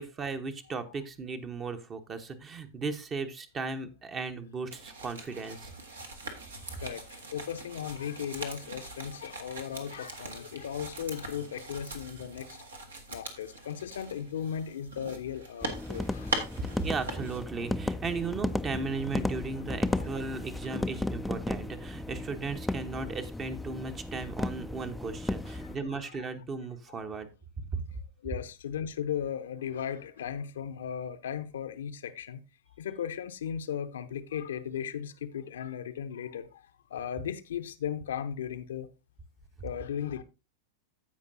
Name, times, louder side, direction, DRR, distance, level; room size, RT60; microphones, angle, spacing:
voice 1, 0.0-5.7 16.6-27.3 27.7-27.8, right 4 dB, 25° right, 1.0 m, -36 dB
sound 1, 4.7-17.4, right 3 dB, 70° right, 1.5 m, -41 dB
voice 2, 6.6-12.6 13.1-16.4 19.9-20.1 25.4-26.1 26.9-27.0 28.2-32.4 32.8-38.9 39.6-40.2, left 8 dB, 65° left, 0.7 m, -37 dB
sound 2, 15.6-25.8, left 1 dB, 5° left, 0.4 m, -35 dB
15.5 x 5.2 x 2.6 m
figure-of-eight pair, 90°, 0 cm